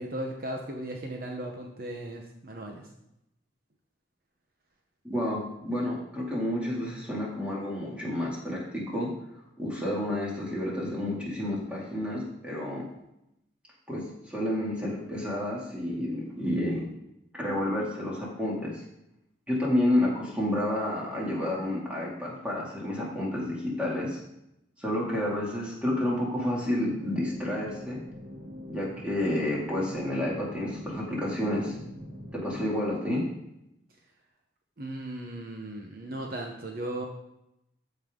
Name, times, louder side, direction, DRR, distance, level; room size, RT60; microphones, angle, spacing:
voice 1, 0.0-2.9 34.8-37.1, right 1 dB, 50° right, 1 dB, 0.9 m, -36 dB
voice 2, 5.0-9.1 9.6-12.8 13.9-16.8 17.3-18.8 19.5-24.2 24.8-28.0 28.7-31.8 32.3-33.2, left 1 dB, 5° right, -5 dB, 2.3 m, -30 dB
sound 1, 27.0-32.7, left 1 dB, 65° right, 2.8 m, -43 dB
14.0 x 5.5 x 3.7 m, 0.84 s
head